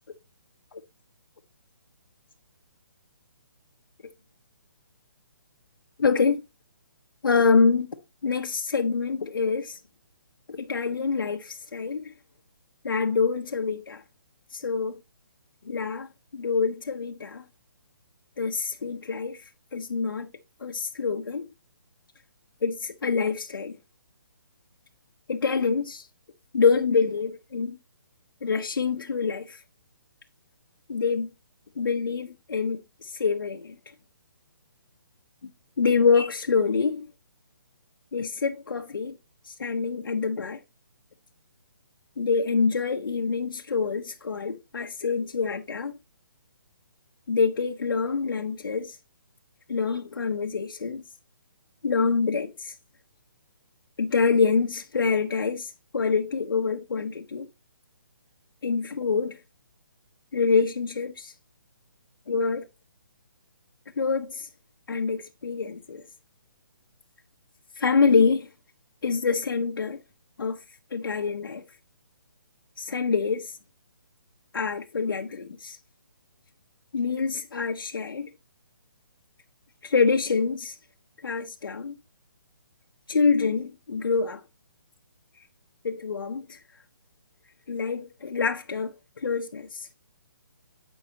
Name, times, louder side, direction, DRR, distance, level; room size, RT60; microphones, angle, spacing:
voice 1, 6.0-6.4 7.2-7.9 8.2-9.8 10.5-12.1 12.8-14.0 14.5-14.9 15.7-17.4 18.4-19.4 19.7-20.3 20.6-21.5 22.6-23.8 25.3-26.1 26.5-27.8 28.4-29.6 30.9-31.3 31.8-33.8 35.8-37.1 38.1-39.2 39.5-40.6 42.2-46.0 47.3-49.0 49.7-51.0 51.8-52.8 54.0-57.5 58.6-59.4 60.3-61.3 62.3-62.7 64.0-64.5 64.9-66.0 67.8-68.5 69.0-70.0 70.4-70.6 70.9-71.6 72.8-73.6 74.5-75.8 76.9-78.3 79.8-80.8 81.2-82.0 83.1-84.4 85.8-86.6 87.7-89.9, left 5 dB, 85° left, 0.8 m, -26 dB
8.9 x 5.5 x 2.8 m
hypercardioid pair, 180°, 11 cm